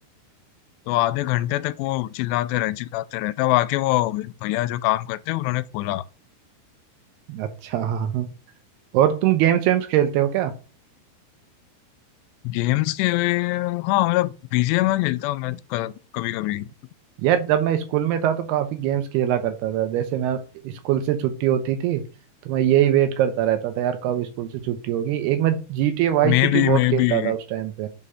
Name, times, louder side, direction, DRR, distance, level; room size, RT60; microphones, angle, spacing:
voice 1, 0.9-6.1 12.4-16.7 26.2-27.3, left 17 dB, 90° left, 2.7 m, -23 dB
voice 2, 7.3-8.3 8.9-10.5 17.2-22.1 22.5-27.9, right 11 dB, 80° right, 2.7 m, -22 dB
6.0 x 5.0 x 5.5 m
omnidirectional pair, 4.9 m